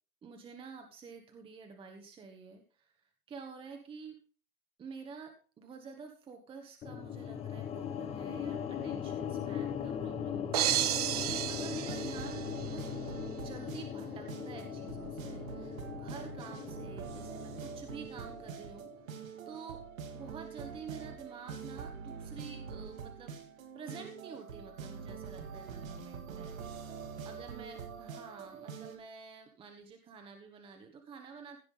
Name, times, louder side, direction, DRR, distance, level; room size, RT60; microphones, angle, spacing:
voice 1, 0.2-4.2 4.8-12.9 13.4-19.8 20.1-26.7 27.2-31.6, right 5 dB, 10° right, 4 dB, 1.3 m, -49 dB
sound 1, 6.8-19.1, left 8 dB, 15° left, 1.0 m, -40 dB
sound 2, 10.5-12.8, right 13 dB, 30° right, 0.4 m, -32 dB
sound 3, 11.1-29.0, right 6 dB, 65° right, 2.8 m, -45 dB
16.0 x 5.8 x 5.5 m, 0.38 s
hypercardioid pair, 140°, 43 cm